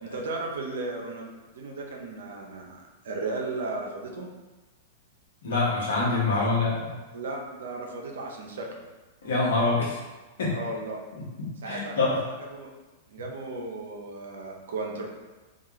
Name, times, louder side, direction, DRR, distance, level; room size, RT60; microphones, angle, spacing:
voice 1, 0.0-4.3 6.3-6.5 7.1-8.7 10.5-11.0 11.6-12.7 13.1-15.1, right 3 dB, 70° right, 0 dB, 0.5 m, -35 dB
voice 2, 5.4-6.8 9.2-10.0 10.4-10.5 11.6-12.2, left 3 dB, 70° left, -5 dB, 0.9 m, -25 dB
2.3 x 2.3 x 2.9 m, 1.2 s
hypercardioid pair, 105°, 0 cm